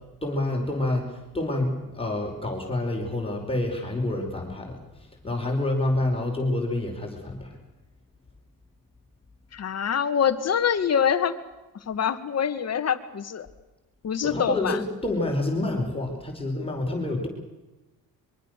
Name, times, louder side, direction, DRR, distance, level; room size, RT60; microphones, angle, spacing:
voice 1, 0.2-7.6 14.2-17.3, left 2 dB, 15° left, 1 dB, 5.2 m, -28 dB
voice 2, 9.5-11.4 11.9-13.5 14.0-14.8, left 8 dB, 45° left, 10 dB, 2.1 m, -25 dB
24.0 x 23.5 x 6.8 m, 1.1 s
cardioid pair, 105°, 37 cm